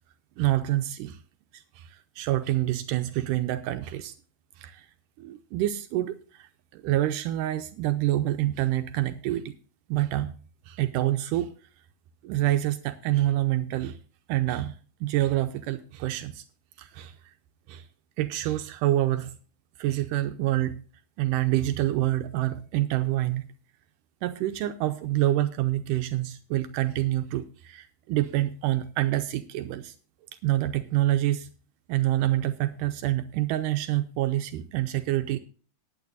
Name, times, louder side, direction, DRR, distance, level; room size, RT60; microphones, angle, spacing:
voice 1, 0.4-1.2 1.5-4.1 4.6-4.9 5.2-9.6 9.9-10.3 10.7-11.5 12.2-14.0 14.3-14.8 15.0-16.4 16.8-17.2 17.7-17.9 18.2-19.4 19.8-20.8 21.2-23.5 24.2-30.0 30.4-31.5 31.9-35.4, right 14 dB, 80° right, 9 dB, 2.2 m, -27 dB
19.0 x 9.3 x 2.5 m, 0.39 s
omnidirectional pair, 3.8 m